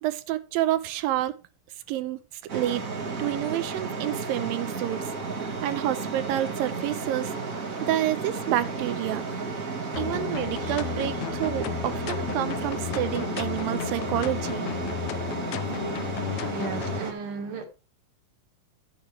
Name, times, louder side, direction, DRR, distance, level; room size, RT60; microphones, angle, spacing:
voice 1, 0.0-1.3 1.9-2.2 2.5-2.8 3.1-5.0 5.4-7.3 7.8-9.3 10.0-14.7 15.4-15.5, right 13 dB, 90° right, 2.6 m, -29 dB
sound 1, 2.5-17.1, right 4 dB, 45° right, 1.1 m, -33 dB
sound 2, 9.9-17.0, left 13 dB, 85° left, 1.5 m, -33 dB
voice 2, 16.5-17.6, right 5 dB, 70° right, 3.1 m, -35 dB
11.5 x 8.7 x 3.3 m
omnidirectional pair, 4.0 m